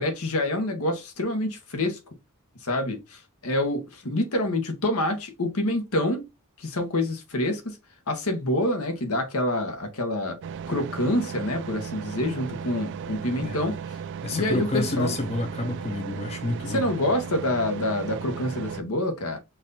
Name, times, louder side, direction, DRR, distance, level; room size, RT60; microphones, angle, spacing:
voice 1, 0.0-2.0 2.6-6.3 6.6-7.8 8.1-10.4 10.7-14.0 14.3-15.2 16.7-19.4, left 1 dB, 75° left, 1.2 m, -27 dB
sound 1, 10.4-18.8, right 7 dB, 55° right, 0.3 m, -36 dB
voice 2, 14.2-16.9, left 2 dB, 30° left, 0.6 m, -29 dB
4.6 x 2.6 x 4.0 m
head